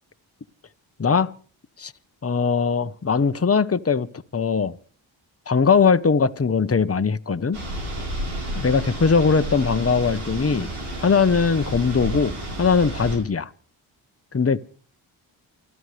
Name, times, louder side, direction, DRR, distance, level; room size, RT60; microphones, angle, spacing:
voice 1, 1.0-1.3 1.8-1.9 2.2-4.1 4.3-4.7 5.5-7.6 8.5-10.7 11.0-13.5 14.3-14.6, left 5 dB, 30° left, 1.1 m, -20 dB
sound 1, 7.5-13.2, right 1 dB, 85° right, 5.7 m, -31 dB
29.0 x 12.5 x 3.4 m
supercardioid pair, 45°, 48 cm